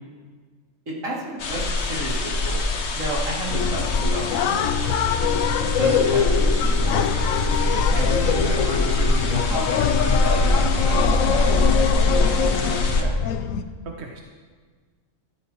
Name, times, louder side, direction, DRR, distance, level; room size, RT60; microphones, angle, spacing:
voice 1, 0.9-2.6 2.9-5.0 5.8-13.1, right 1 dB, 75° right, -5 dB, 3.0 m, -32 dB
sound 1, 1.4-13.0, left 2 dB, 60° left, 1.2 m, -23 dB
sound 2, 3.5-13.6, left 8 dB, 85° left, 1.0 m, -24 dB
voice 2, 12.7-13.3 13.6-14.2, right 3 dB, 55° right, 1 dB, 1.2 m, -38 dB
14.5 x 13.0 x 3.0 m, 1.5 s
omnidirectional pair, 1.4 m